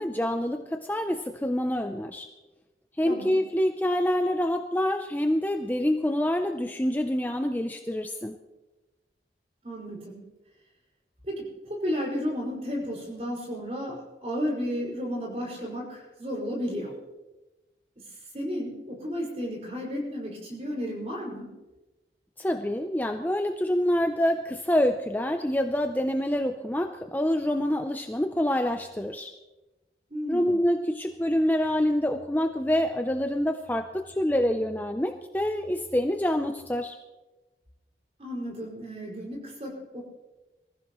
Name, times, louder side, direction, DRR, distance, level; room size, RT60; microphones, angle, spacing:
voice 1, 0.0-2.3 3.0-8.3 22.4-29.3 30.3-37.0, left 1 dB, 10° left, 5 dB, 0.5 m, -26 dB
voice 2, 3.0-3.4 9.6-10.3 11.2-17.0 18.3-21.5 30.1-30.6 38.2-40.0, equal, 35° right, -2 dB, 5.5 m, -33 dB
24.0 x 15.0 x 3.1 m, 1.1 s
head